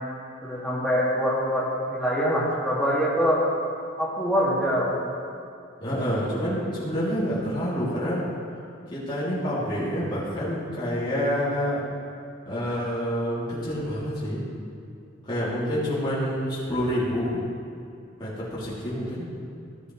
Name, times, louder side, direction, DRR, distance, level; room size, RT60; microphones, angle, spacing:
voice 1, 0.4-3.4 4.0-5.0, equal, 5° left, -7 dB, 2.3 m, -24 dB
voice 2, 5.8-8.2 8.9-11.8 12.4-14.4 15.3-17.4 18.2-19.3, equal, 25° left, -11 dB, 3.1 m, -27 dB
16.0 x 10.5 x 3.3 m, 2.5 s
head